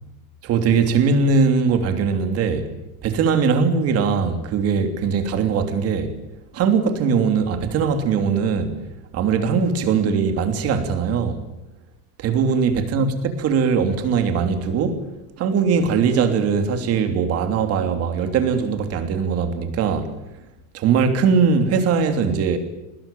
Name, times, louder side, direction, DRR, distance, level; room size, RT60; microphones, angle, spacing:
voice 1, 0.4-2.7 3.0-6.1 6.5-8.8 9.1-11.4 12.2-15.1 15.4-20.1 20.7-22.6, right 5 dB, 35° right, 3.1 m, -20 dB
23.5 x 20.5 x 9.0 m
cardioid pair, 175°, 44 cm